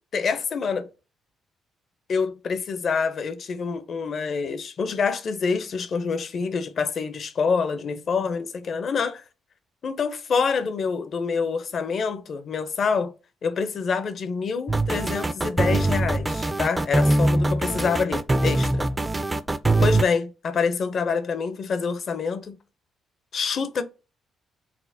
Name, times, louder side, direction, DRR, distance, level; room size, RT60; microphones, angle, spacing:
voice 1, 0.1-0.9 2.1-9.2 9.8-13.1 13.4-18.8 19.8-22.6 23.3-23.8, left 5 dB, 55° left, 0.5 m, -26 dB
sound 1, 14.7-20.0, right 2 dB, 20° right, 0.3 m, -22 dB
4.1 x 2.1 x 2.6 m
cardioid pair, 90°, 0 cm